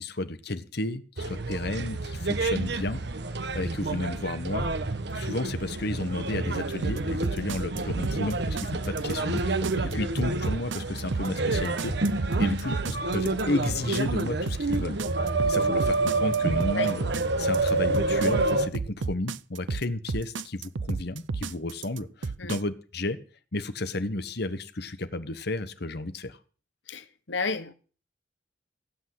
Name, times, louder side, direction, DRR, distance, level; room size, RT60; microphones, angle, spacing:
voice 1, 0.0-3.0 3.5-4.7 5.1-12.0 12.4-15.0 15.5-17.1 17.4-23.2 23.5-26.4, left 2 dB, 60° left, 1.3 m, -32 dB
sound 1, 1.2-18.7, right 3 dB, 65° right, 1.3 m, -28 dB
sound 2, 6.8-22.6, right 4 dB, 80° right, 0.6 m, -32 dB
voice 2, 12.4-12.7 16.7-16.9 22.4-22.6 26.9-27.7, left 4 dB, 80° left, 1.4 m, -33 dB
16.5 x 8.5 x 7.8 m
head